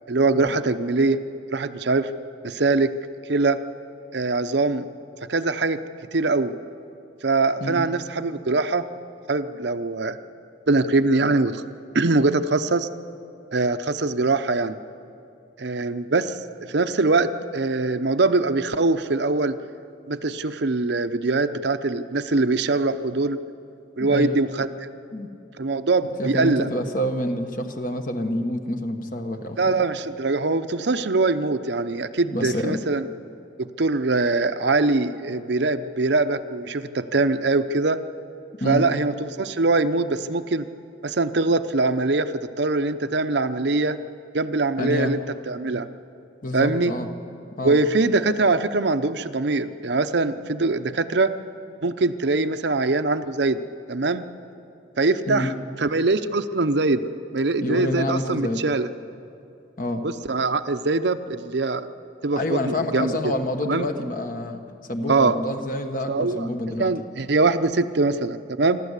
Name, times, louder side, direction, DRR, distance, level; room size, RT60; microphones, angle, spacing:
voice 1, 0.1-1.2 1.5-2.1 2.4-2.9 3.3-3.6 4.1-4.9 5.3-5.8 6.1-6.5 7.2-8.9 9.3-10.2 10.7-11.6 11.9-12.9 13.5-14.8 15.6-16.4 16.7-19.6 20.1-23.4 24.0-24.9 25.6-26.7 29.6-33.1 33.6-38.0 38.6-40.7 41.0-44.0 44.3-45.2 45.5-45.9 46.5-46.9 47.6-51.3 51.8-53.6 53.9-54.3 55.0-55.5 55.8-58.9 60.0-61.9 62.2-63.3 63.7-63.9 65.1-65.4 66.1-66.5 66.8-68.8, right 3 dB, 65° right, 10 dB, 0.7 m, -22 dB
voice 2, 24.0-24.4 25.1-25.3 26.2-29.6 32.3-32.8 38.6-38.9 44.8-45.1 46.4-47.1 47.6-47.8 55.3-55.5 57.6-58.6 59.8-60.0 62.3-64.6 64.9-66.9, left 1 dB, 45° left, 6 dB, 1.3 m, -27 dB
27.0 x 12.5 x 8.2 m, 2.6 s
head